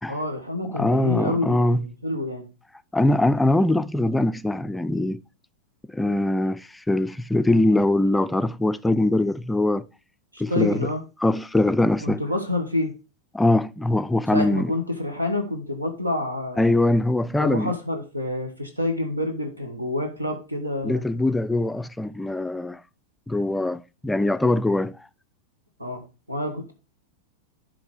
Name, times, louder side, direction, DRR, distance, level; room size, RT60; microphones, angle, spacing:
voice 1, 0.1-2.5 10.3-11.0 12.0-12.9 14.3-16.7 17.4-21.0 25.8-26.0 26.3-26.7, left 1 dB, 85° right, 1.2 m, -28 dB
voice 2, 0.7-1.8 2.9-5.2 5.9-9.9 10.4-10.9 11.2-12.2 13.3-14.7 16.6-17.7 20.8-22.8 23.3-25.0, left 2 dB, 5° left, 0.4 m, -22 dB
11.0 x 3.9 x 4.8 m
figure-of-eight pair, 90°, 0 cm